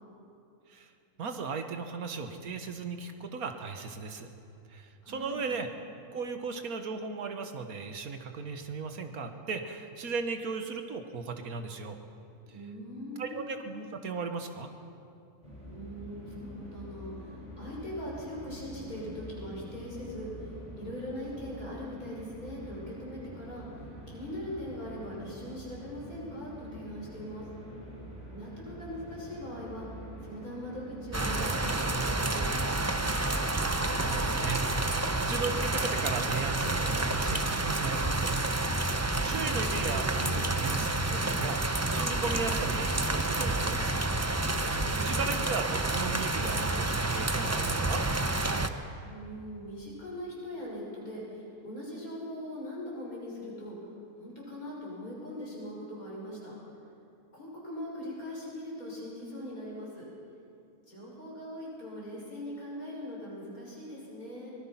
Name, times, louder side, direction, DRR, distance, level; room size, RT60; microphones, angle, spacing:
voice 1, 1.2-4.3 4.7-5.7 6.1-12.0 13.2-14.7 33.8-38.3 38.8-44.0 45.0-48.0, right 4 dB, 70° right, 6 dB, 1.8 m, -36 dB
voice 2, 5.0-5.5 12.5-13.5 15.7-23.6 24.1-27.5 28.3-29.9 30.2-32.5 39.2-39.6 44.7-45.5 49.0-53.7 54.2-56.5 57.3-60.0 60.9-64.5, equal, 65° left, -5 dB, 6.5 m, -41 dB
sound 1, 15.4-34.4, equal, 20° left, 5.4 m, -46 dB
sound 2, 31.1-48.7, right 2 dB, 20° right, 0.5 m, -29 dB
23.5 x 19.5 x 5.8 m, 2.6 s
omnidirectional pair, 1.6 m